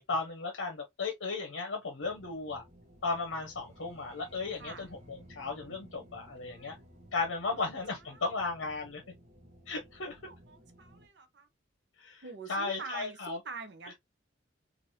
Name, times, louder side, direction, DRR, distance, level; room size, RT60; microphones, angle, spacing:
voice 1, 0.0-2.6 3.0-6.8 7.1-9.0 9.7-10.2 12.0-12.2 12.5-13.4 13.8-13.9, left 3 dB, 75° left, 0.7 m, -35 dB
sound 1, 2.0-11.1, equal, 35° right, 0.9 m, -56 dB
voice 2, 4.5-4.9 6.5-6.7 7.5-7.6 8.1-8.2 10.3-11.5 12.2-13.9, right 4 dB, 60° right, 0.6 m, -45 dB
3.2 x 2.4 x 2.7 m
head